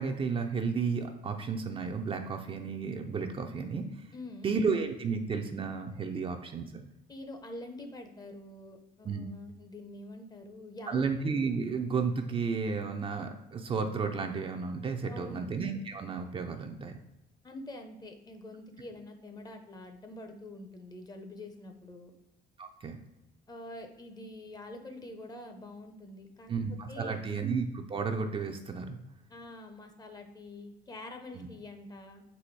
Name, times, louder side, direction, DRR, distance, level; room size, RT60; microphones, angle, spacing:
voice 1, 0.0-4.1 4.4-6.8 9.1-9.3 10.9-17.0 22.6-23.0 26.5-29.0 31.3-31.5, right 5 dB, 30° right, 5 dB, 0.4 m, -33 dB
voice 2, 4.1-4.6 7.1-11.0 15.1-15.5 17.4-22.1 23.5-26.5 26.9-27.4 29.3-32.2, left 1 dB, 25° left, 5 dB, 0.6 m, -46 dB
4.1 x 2.7 x 4.5 m, 0.97 s
cardioid pair, 110°, 17 cm